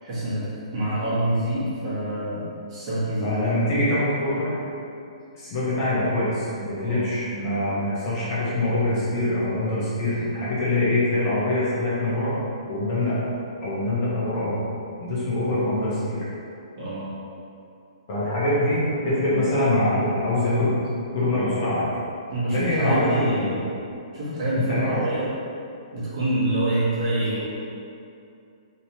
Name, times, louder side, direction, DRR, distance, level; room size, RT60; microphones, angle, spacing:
voice 1, 0.0-3.4 6.8-7.1 16.8-17.1 18.5-18.7 22.3-23.6 24.1-25.3 25.9-27.4, right 1 dB, 35° right, -11 dB, 1.1 m, -26 dB
voice 2, 3.2-4.5 5.3-12.4 12.7-13.3 13.6-14.6 15.0-16.2 18.1-20.8 21.1-21.9 22.5-23.6 24.6-25.0, left 1 dB, 30° left, -10 dB, 0.9 m, -24 dB
3.1 x 2.9 x 2.8 m, 2.6 s
hypercardioid pair, 170°, 4 cm